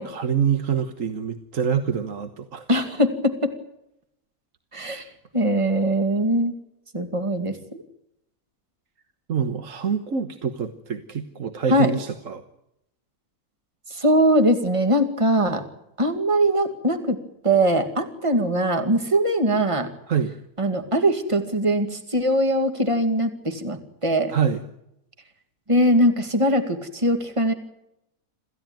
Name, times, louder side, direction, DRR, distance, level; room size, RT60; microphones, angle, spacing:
voice 1, 0.0-2.6 4.9-5.1 9.3-12.4 20.1-20.3 24.3-24.6, right 7 dB, 60° right, 8 dB, 1.6 m, -26 dB
voice 2, 2.7-3.5 4.7-5.0 5.3-6.6 6.9-7.8 11.7-11.9 13.9-15.6 16.0-17.2 17.4-19.9 20.6-24.3 25.7-27.5, right 1 dB, 20° right, 7 dB, 2.4 m, -21 dB
27.0 x 15.5 x 9.1 m, 0.83 s
omnidirectional pair, 1.5 m